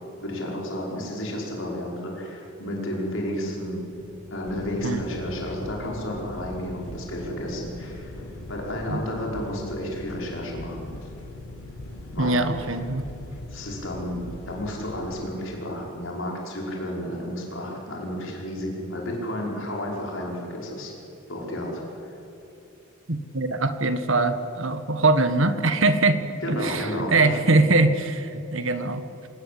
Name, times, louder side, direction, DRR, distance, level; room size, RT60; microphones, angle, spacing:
voice 1, 0.2-3.8 4.3-8.2 8.5-10.9 12.1-12.8 13.5-20.9 21.3-22.1 26.4-27.4, equal, 60° left, -2 dB, 5.4 m, -32 dB
sound 1, 3.9-9.3, equal, 10° left, 5.7 m, -43 dB
Engine, 4.5-15.1, left 2 dB, 85° left, 4.4 m, -41 dB
voice 2, 12.2-13.1 23.1-26.2 26.5-29.3, right 2 dB, 60° right, 10 dB, 1.5 m, -22 dB
26.0 x 19.5 x 8.5 m, 2.9 s
head